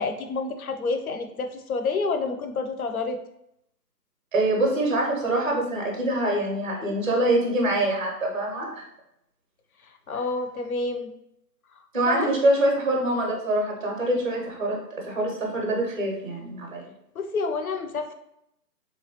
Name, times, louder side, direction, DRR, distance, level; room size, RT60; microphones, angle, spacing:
voice 1, 0.0-3.2 9.8-11.1 12.1-12.3 17.2-18.1, left 4 dB, 60° left, 6 dB, 0.5 m, -29 dB
voice 2, 4.3-8.8 11.9-14.8 15.1-16.8, right 1 dB, 30° right, -1 dB, 0.6 m, -24 dB
3.6 x 3.0 x 2.9 m, 0.80 s
figure-of-eight pair, 160°, 50 cm